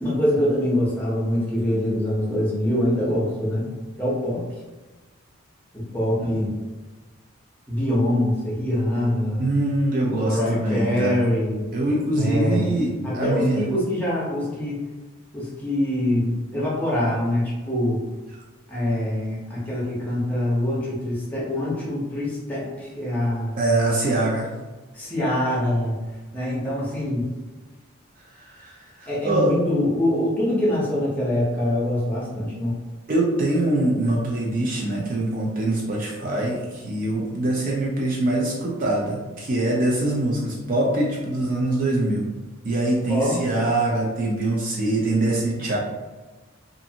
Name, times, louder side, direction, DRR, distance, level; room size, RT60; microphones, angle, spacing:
voice 1, 0.0-3.7 4.0-4.4 5.7-6.5 7.7-9.4 10.2-11.7 12.1-12.8 13.0-14.9 15.3-18.0 18.7-23.6 24.9-25.9 26.3-27.3 29.1-32.7 43.1-43.4, left 1 dB, 10° left, -7 dB, 0.7 m, -24 dB
voice 2, 9.4-11.2 11.7-13.7 23.6-24.5 28.4-29.5 33.1-42.3 42.6-45.8, right 2 dB, 40° right, -3 dB, 0.4 m, -23 dB
2.5 x 2.5 x 2.7 m, 1.2 s
head